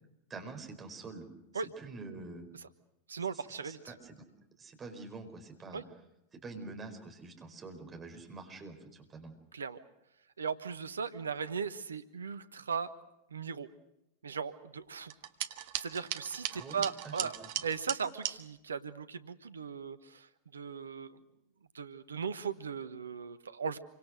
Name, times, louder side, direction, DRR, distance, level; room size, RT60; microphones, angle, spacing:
voice 1, 0.3-1.3 1.5-2.4 3.3-4.2 4.6-5.8 6.3-9.3 16.5-17.5, right 3 dB, 20° right, 4 dB, 4.9 m, -46 dB
voice 2, 3.1-3.8 5.7-5.8 9.5-9.8 10.4-12.9 13.3-13.7 14.2-15.1 15.8-21.2 21.7-23.8, right 6 dB, 70° right, 12 dB, 1.2 m, -38 dB
sound 1, 15.1-18.4, right 12 dB, 50° right, 1.3 m, -38 dB
28.0 x 25.0 x 6.5 m, 0.86 s
figure-of-eight pair, 90°, 0 cm